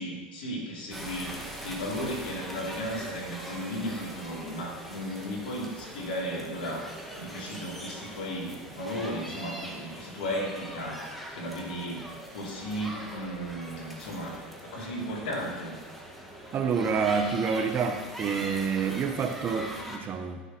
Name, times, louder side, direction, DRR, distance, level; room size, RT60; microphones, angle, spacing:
voice 1, 0.0-6.9 7.1-15.8, equal, 75° left, -3 dB, 3.1 m, -35 dB
sound 1, 0.9-20.0, equal, ahead, 1.8 m, -42 dB
voice 2, 16.5-20.4, right 6 dB, 35° right, 6 dB, 1.1 m, -28 dB
15.0 x 6.7 x 3.1 m, 1.3 s
hypercardioid pair, 80°, 5 cm